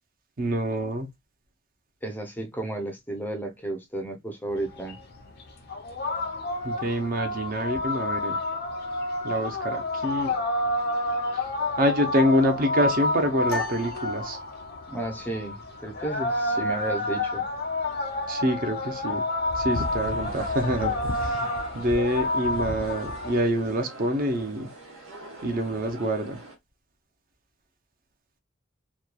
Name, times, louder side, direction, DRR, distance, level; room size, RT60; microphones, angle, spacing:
voice 1, 0.4-1.1 6.6-8.4 9.2-10.3 11.8-14.4 18.3-19.2 19.5-21.4 21.7-24.7 25.4-26.4, equal, 45° right, 0.6 m, -26 dB
voice 2, 2.0-5.0 14.9-17.5 21.4-21.5, right 2 dB, 10° left, 0.5 m, -33 dB
sound 1, 4.5-23.4, left 2 dB, 50° left, 0.6 m, -29 dB
sound 2, 13.5-15.0, left 2 dB, 85° left, 0.9 m, -36 dB
sound 3, 19.7-26.5, right 2 dB, 85° right, 1.1 m, -44 dB
2.9 x 2.2 x 2.2 m
head